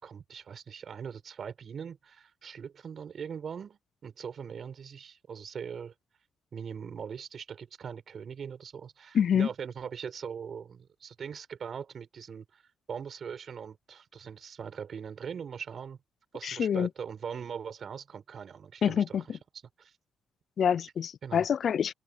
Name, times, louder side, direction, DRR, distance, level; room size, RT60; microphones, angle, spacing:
voice 1, 0.0-5.9 6.5-12.6 12.9-16.0 16.3-19.4 19.8-19.9 21.2-21.5, right 7 dB, 50° right, 7.0 m, -41 dB
voice 2, 9.1-9.5 16.4-16.9 18.8-19.2 20.6-21.9, left 8 dB, 55° left, 0.4 m, -26 dB
open air
cardioid pair, 90°, 0 cm